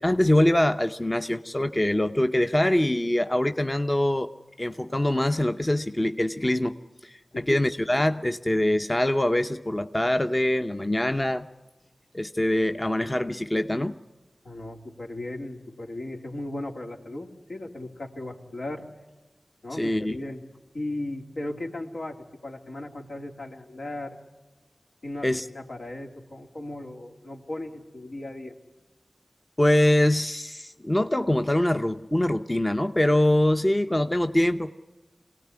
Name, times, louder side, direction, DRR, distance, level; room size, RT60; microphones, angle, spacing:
voice 1, 0.0-4.3 4.6-6.8 7.0-7.2 7.5-11.5 12.1-13.9 19.7-20.2 25.2-25.4 29.6-34.7, left 1 dB, 20° left, 7 dB, 0.8 m, -23 dB
voice 2, 14.4-18.9 19.6-20.5 20.7-24.2 25.0-28.6, left 1 dB, 75° left, 1 dB, 3.0 m, -36 dB
24.5 x 18.0 x 9.6 m, 1.2 s
wide cardioid pair, 55°, 0 cm